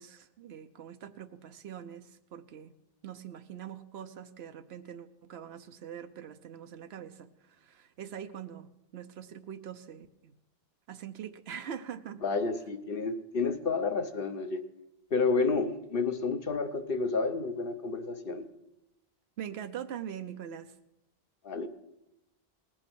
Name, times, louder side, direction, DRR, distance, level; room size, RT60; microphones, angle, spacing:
voice 1, 0.0-2.7 3.0-10.3 10.9-12.2 19.4-20.7, right 9 dB, 90° right, 8 dB, 1.0 m, -43 dB
voice 2, 12.2-14.6 15.1-18.4 21.4-21.7, left 4 dB, 60° left, 8 dB, 1.2 m, -30 dB
19.0 x 9.0 x 6.1 m, 0.93 s
omnidirectional pair, 1.0 m